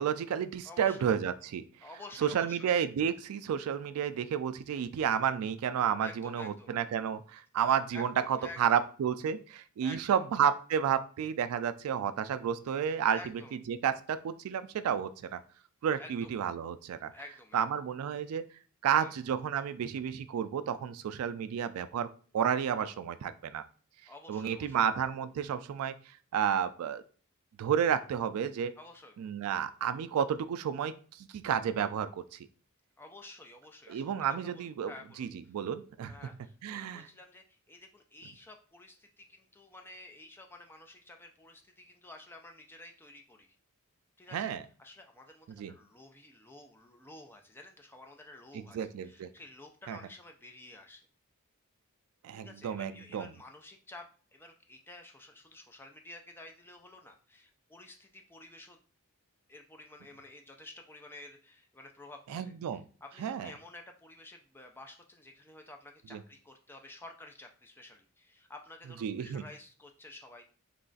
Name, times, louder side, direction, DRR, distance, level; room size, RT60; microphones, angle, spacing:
voice 1, 0.0-1.6 2.2-13.2 13.7-15.4 15.8-17.1 17.5-18.5 18.8-23.6 24.3-25.9 26.3-27.0 27.6-28.7 29.2-32.4 33.9-34.9 35.2-36.1 36.6-37.1 44.3-44.6 45.5-45.7 48.5-49.3 49.9-50.0 52.2-53.3 62.3-62.8 63.2-63.5 66.1-66.2 69.0-69.4, right 8 dB, 75° right, 12 dB, 0.3 m, -31 dB
voice 2, 0.6-1.1 1.8-2.7 6.0-6.7 7.9-8.8 9.8-10.2 13.1-13.5 16.0-16.3 17.1-17.6 18.9-19.1 24.1-24.9 28.8-29.1 33.0-35.3 36.1-43.6 44.2-44.5 44.8-51.1 52.3-58.8 59.5-62.5 63.0-70.4, left 2 dB, 10° left, 3 dB, 0.4 m, -51 dB
3.2 x 2.4 x 3.8 m, 0.41 s
head